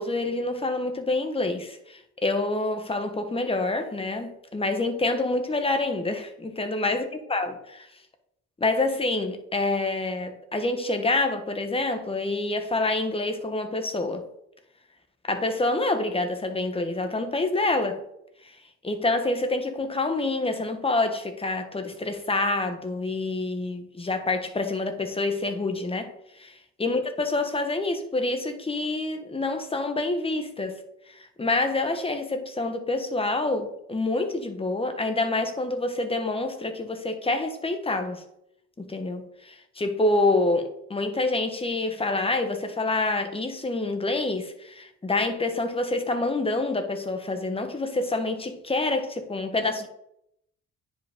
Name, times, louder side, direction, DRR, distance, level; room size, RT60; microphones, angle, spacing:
voice 1, 0.0-7.9 8.6-14.2 15.3-18.0 18.8-26.1 26.4-30.8 31.1-38.2 38.8-49.9, left 2 dB, 20° left, 1.3 m, -27 dB
9.8 x 5.2 x 3.8 m
cardioid pair, 90°, 30 cm